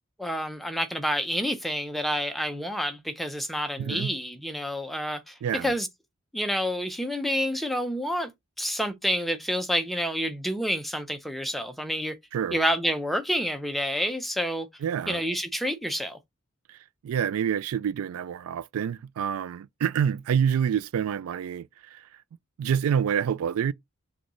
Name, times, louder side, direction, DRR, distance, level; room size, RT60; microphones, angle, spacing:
voice 1, 0.2-5.9 6.3-8.3 8.6-12.2 12.5-14.7 15.1-16.2, equal, ahead, 0.5 m, -28 dB
voice 2, 3.8-4.1 5.4-5.7 12.3-12.6 14.8-15.2 16.7-16.8 17.0-22.1 22.6-23.7, right 8 dB, 85° right, 0.3 m, -27 dB
6.3 x 2.3 x 3.0 m
head